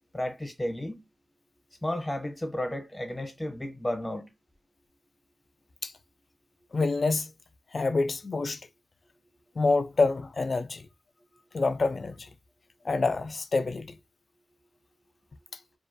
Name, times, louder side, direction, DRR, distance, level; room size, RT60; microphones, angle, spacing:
voice 1, 0.1-1.0 1.8-4.3, left 1 dB, 20° left, 0.7 m, -33 dB
voice 2, 6.7-7.3 7.7-8.6 9.6-10.9 11.5-12.3 12.8-14.0, left 3 dB, 60° left, 0.3 m, -27 dB
2.3 x 2.2 x 2.5 m
cardioid pair, 65°, 0 cm